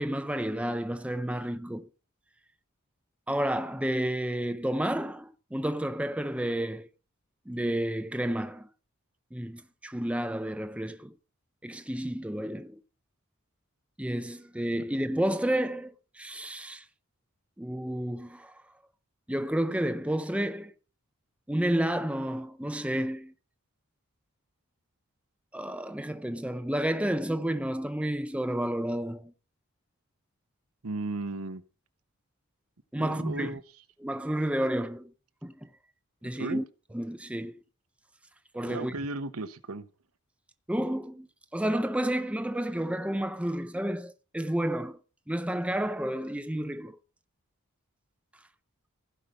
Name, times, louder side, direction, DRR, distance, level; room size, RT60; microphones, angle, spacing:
voice 1, 0.0-1.9 3.3-6.9 7.5-8.7 9.3-11.1 11.6-12.8 14.0-16.9 17.6-18.5 19.3-20.7 21.5-23.3 25.5-29.3 32.9-33.5 34.0-35.1 35.4-35.7 36.2-36.6 36.9-37.6 38.5-38.9 40.7-41.3 41.5-45.0 45.3-47.0, right 1 dB, 5° right, 0.5 m, -31 dB
voice 2, 30.8-31.6 33.0-33.6 36.3-36.6 38.7-39.9, right 2 dB, 75° right, 1.0 m, -35 dB
16.0 x 5.7 x 6.6 m
head